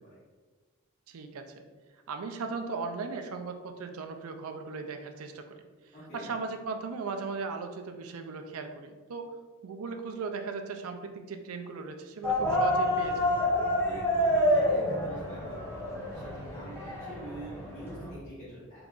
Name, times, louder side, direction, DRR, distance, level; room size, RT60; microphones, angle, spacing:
voice 1, 1.1-1.4 2.1-5.4 6.1-9.2 9.6-13.3, right 4 dB, 90° right, 6 dB, 0.4 m, -37 dB
voice 2, 5.9-6.3 13.8-15.6 15.9-18.9, right 1 dB, 35° left, -11 dB, 1.1 m, -45 dB
sound 1, 12.2-18.1, left 1 dB, 10° left, 0.8 m, -28 dB
3.9 x 3.7 x 2.4 m, 1.4 s
head